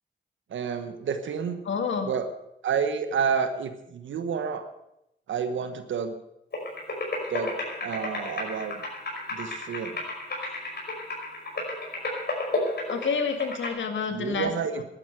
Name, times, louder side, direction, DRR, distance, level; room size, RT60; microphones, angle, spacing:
voice 1, 0.5-1.6 2.0-2.3 2.6-4.7 5.3-6.1 7.3-8.8 9.3-10.0 14.1-14.8, right 6 dB, 75° right, 9 dB, 1.2 m, -29 dB
voice 2, 1.7-2.1 12.9-14.5, left 5 dB, 75° left, 6 dB, 2.0 m, -28 dB
sound 1, 6.5-13.7, left 2 dB, 55° left, 5.5 m, -33 dB
12.0 x 10.5 x 8.0 m, 0.82 s
supercardioid pair, 40°, 20 cm